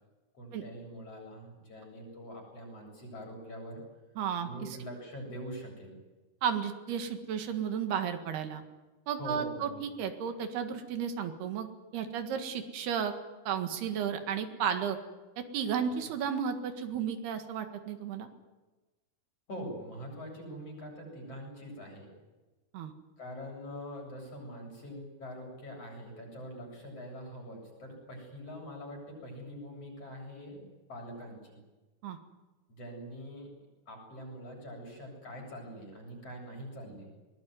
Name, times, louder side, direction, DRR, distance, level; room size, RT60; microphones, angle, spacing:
voice 1, 0.3-3.8 4.4-6.0 9.2-9.8 15.8-16.1 19.5-22.1 23.2-30.6 30.9-31.6 32.7-33.5 33.9-37.1, equal, 35° left, 0 dB, 8.7 m, -44 dB
voice 2, 4.2-4.8 6.4-8.6 9.1-11.7 11.9-13.1 13.5-15.0 15.4-18.3 22.7-22.9 32.0-32.2, right 7 dB, 85° right, 7 dB, 3.8 m, -33 dB
23.0 x 20.0 x 9.5 m, 1.2 s
omnidirectional pair, 4.5 m